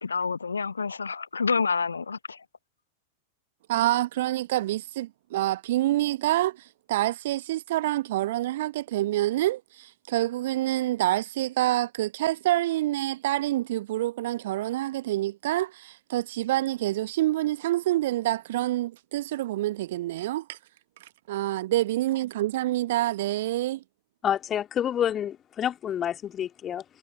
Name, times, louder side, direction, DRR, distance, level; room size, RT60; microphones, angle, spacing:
voice 1, 0.0-2.2, left 5 dB, 75° left, 0.4 m, -28 dB
voice 2, 3.7-20.6 21.0-23.8, right 15 dB, 55° right, 1.1 m, -27 dB
voice 3, 24.2-26.8, left 9 dB, 25° left, 2.4 m, -28 dB
figure-of-eight pair, 90°, 0 cm